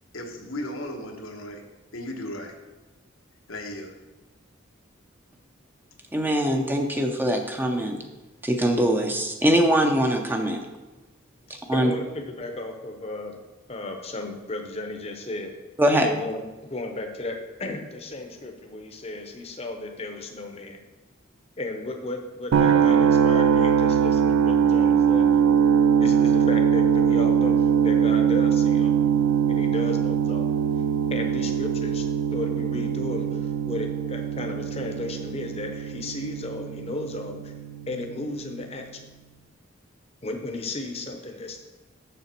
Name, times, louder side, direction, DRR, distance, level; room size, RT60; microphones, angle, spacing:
voice 1, 0.1-1.6 1.9-2.6 3.5-4.0, left 1 dB, 90° left, 2 dB, 1.2 m, -35 dB
voice 2, 6.1-8.0 8.4-10.6 11.5-11.9 15.8-16.1, right 1 dB, 10° right, 3 dB, 0.6 m, -22 dB
voice 3, 11.7-13.4 13.7-15.5 16.0-20.8 21.6-25.3 26.0-28.9 29.5-30.5 31.1-32.1 32.3-37.5 37.9-39.0 40.2-41.6, left 2 dB, 30° left, 4 dB, 0.8 m, -34 dB
sound 1, 22.5-38.4, right 7 dB, 75° right, 0.4 m, -22 dB
6.8 x 6.7 x 4.4 m, 1.1 s
head